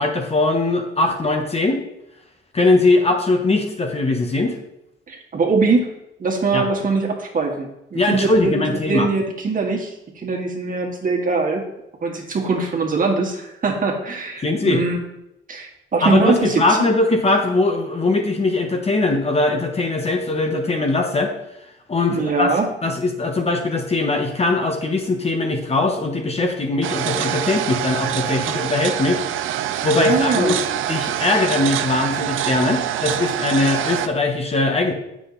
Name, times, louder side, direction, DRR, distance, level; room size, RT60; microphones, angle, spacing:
voice 1, 0.0-1.8 2.5-4.5 6.5-6.6 7.9-9.1 14.4-14.8 16.0-21.3 21.9-29.2 29.8-30.6 30.9-34.9, left 2 dB, 30° left, 3 dB, 1.2 m, -20 dB
voice 2, 5.1-5.9 6.2-8.5 8.9-11.6 12.0-15.0 15.5-16.9 22.1-22.7 30.0-30.6, right 4 dB, 45° right, 1 dB, 1.7 m, -22 dB
sound 1, 26.8-34.1, right 11 dB, 85° right, 0.5 m, -25 dB
7.8 x 6.3 x 4.0 m, 0.87 s
cardioid pair, 90°, 20 cm